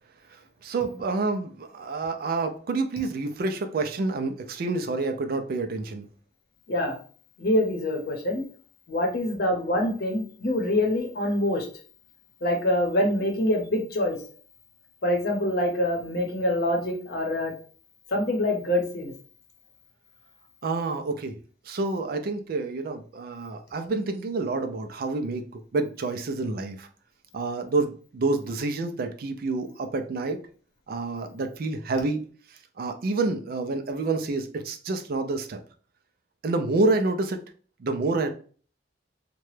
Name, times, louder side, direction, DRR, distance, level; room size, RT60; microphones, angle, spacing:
voice 1, 0.6-6.1 20.6-21.4 21.7-26.9 27.3-30.4 30.9-32.3 32.8-35.6 36.4-37.4 37.8-38.3, right 3 dB, 50° right, 7 dB, 0.4 m, -28 dB
voice 2, 6.7-7.0 7.4-8.4 8.9-11.7 12.4-14.2 15.0-17.5 18.1-19.1, left 1 dB, 55° left, 2 dB, 0.8 m, -25 dB
2.9 x 2.2 x 3.1 m, 0.42 s
head